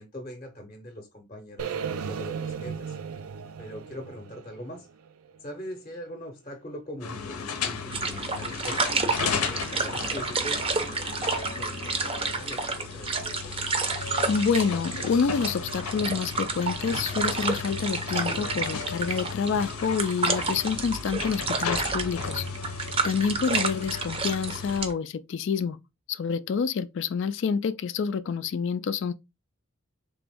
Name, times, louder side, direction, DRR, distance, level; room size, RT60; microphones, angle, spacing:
voice 1, 0.0-3.0 3.6-4.9 5.4-13.5, equal, 30° left, 0.7 m, -42 dB
sound 1, 1.6-5.6, right 6 dB, 85° right, 0.4 m, -36 dB
sound 2, 7.0-24.8, left 5 dB, 90° left, 0.7 m, -35 dB
sound 3, 7.9-24.9, right 4 dB, 25° right, 0.5 m, -30 dB
voice 2, 14.3-22.4 23.0-25.8 26.1-29.1, left 6 dB, 55° left, 0.3 m, -27 dB
3.5 x 3.0 x 3.5 m
head